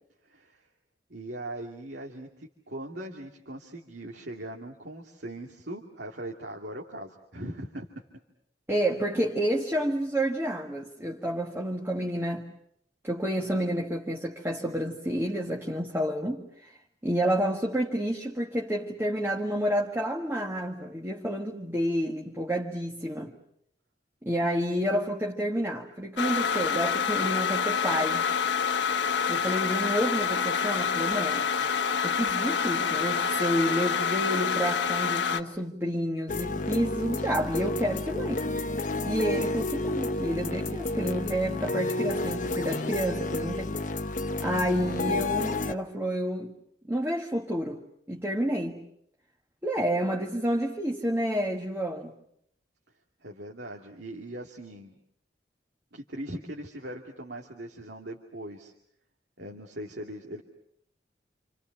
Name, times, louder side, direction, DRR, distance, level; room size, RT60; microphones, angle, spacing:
voice 1, 0.2-0.6 1.1-7.9 53.2-55.0 55.9-58.7 59.4-60.4, right 1 dB, 70° right, 2.5 m, -40 dB
voice 2, 8.7-12.5 13.0-16.7 17.0-23.3 24.2-28.3 29.3-38.5 39.0-43.8 44.4-46.5 46.8-47.8 48.1-48.8 49.6-52.1, equal, 15° right, 1.7 m, -29 dB
sound 1, 26.2-35.4, left 6 dB, 85° left, 1.4 m, -27 dB
sound 2, 36.3-45.7, left 2 dB, 45° left, 1.0 m, -31 dB
29.0 x 28.0 x 6.1 m
head